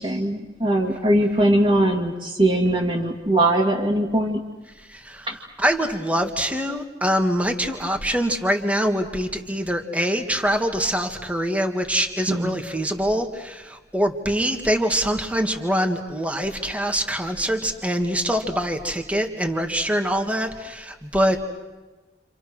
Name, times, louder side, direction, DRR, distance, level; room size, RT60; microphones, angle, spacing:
voice 1, 0.0-4.4 5.3-5.4 12.3-12.5, right 1 dB, 30° right, -5 dB, 2.4 m, -21 dB
voice 2, 4.9-5.3 5.6-21.4, equal, 10° right, 4 dB, 2.0 m, -24 dB
30.0 x 27.5 x 6.3 m, 1.2 s
head